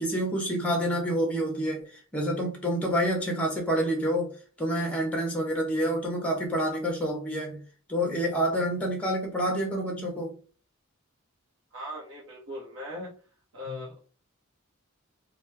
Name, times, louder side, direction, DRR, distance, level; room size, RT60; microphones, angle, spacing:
voice 1, 0.0-1.9 2.1-4.3 4.6-7.6 7.9-10.4, equal, 5° left, 0.9 m, -28 dB
voice 2, 11.7-13.1 13.5-14.0, left 1 dB, 65° right, 0.9 m, -39 dB
3.1 x 2.3 x 3.3 m
head